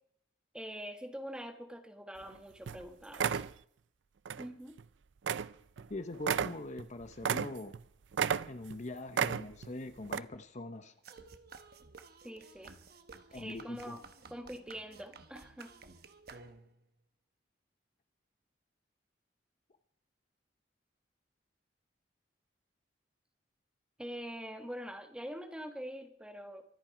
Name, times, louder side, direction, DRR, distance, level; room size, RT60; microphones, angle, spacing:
voice 1, 0.5-3.4 4.4-4.8 12.2-12.7 13.3-14.0 14.3-15.8 24.0-26.6, equal, 5° right, 5 dB, 1.6 m, -44 dB
sound 1, 2.2-2.4 2.7-2.8 3.1-3.5 4.3-4.5 4.8-4.9 5.3-5.5 5.8-5.9 6.2-7.8 8.1-8.8 9.1-9.7 10.1-10.2, right 7 dB, 85° right, 0.5 m, -32 dB
voice 2, 5.9-7.7 8.5-10.9 13.3-14.0, left 2 dB, 40° left, 9 dB, 0.8 m, -42 dB
sound 2, 11.0-16.9, right 4 dB, 60° right, 1.1 m, -54 dB
24.0 x 8.9 x 5.0 m, 0.68 s
head